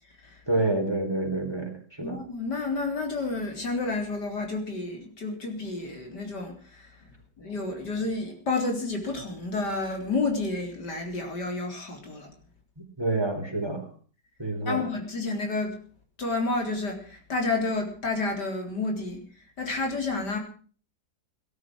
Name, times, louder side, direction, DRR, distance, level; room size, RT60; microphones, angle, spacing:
voice 1, 0.5-2.2 13.0-13.8 14.4-14.8, right 2 dB, 15° right, 3 dB, 4.1 m, -28 dB
voice 2, 2.0-7.1 7.4-12.3 14.7-15.8 16.2-20.4, left 3 dB, 80° left, 3 dB, 4.4 m, -30 dB
18.0 x 12.0 x 6.2 m, 0.43 s
omnidirectional pair, 1.8 m